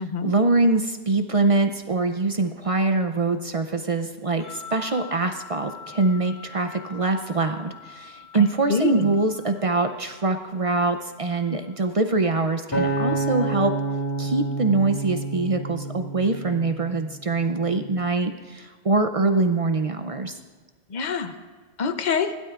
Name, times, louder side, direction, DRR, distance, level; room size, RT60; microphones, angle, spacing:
voice 1, 0.0-13.7 14.2-20.4, right 3 dB, 45° right, 6 dB, 0.5 m, -24 dB
sound 1, 4.4-13.7, left 8 dB, 10° right, 4.4 m, -46 dB
voice 2, 8.3-9.1 20.9-21.3 21.8-22.3, left 5 dB, 45° left, 9 dB, 0.8 m, -26 dB
Acoustic guitar, 12.7-17.1 17.7-17.9, right 2 dB, 20° left, 2.8 m, -28 dB
21.0 x 12.0 x 2.4 m, 1.4 s
omnidirectional pair, 1.1 m